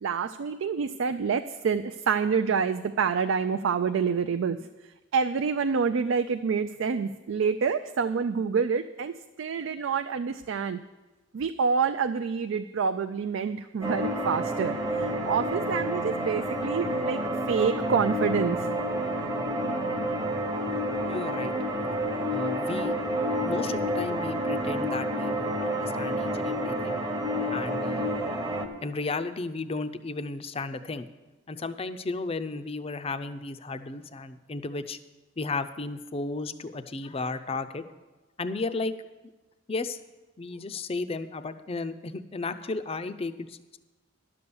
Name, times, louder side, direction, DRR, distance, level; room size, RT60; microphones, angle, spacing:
voice 1, 0.0-4.6 5.1-9.1 9.4-10.8 11.3-17.2 17.5-18.7, right 6 dB, 80° right, 9 dB, 0.4 m, -27 dB
sound 1, 13.8-28.7, equal, 20° right, 0.8 m, -29 dB
voice 2, 21.1-21.6 22.3-22.9 23.4-27.0 27.5-28.2 28.8-31.1 31.5-35.0 35.4-37.8 38.4-38.9 39.7-40.0 40.4-43.8, left 3 dB, 30° left, 11 dB, 0.5 m, -34 dB
11.0 x 6.9 x 7.0 m, 1.2 s
head